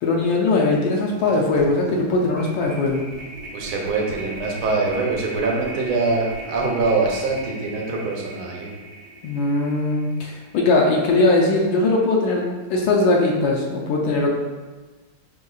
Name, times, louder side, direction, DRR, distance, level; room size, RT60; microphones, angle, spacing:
voice 1, 0.0-3.0 9.2-14.3, left 2 dB, 75° left, -2 dB, 1.2 m, -20 dB
sound 1, 1.1-11.4, right 2 dB, 60° right, 1.0 m, -38 dB
voice 2, 3.5-8.7, right 3 dB, 80° right, -1 dB, 1.5 m, -23 dB
5.0 x 3.6 x 2.3 m, 1.3 s
omnidirectional pair, 2.3 m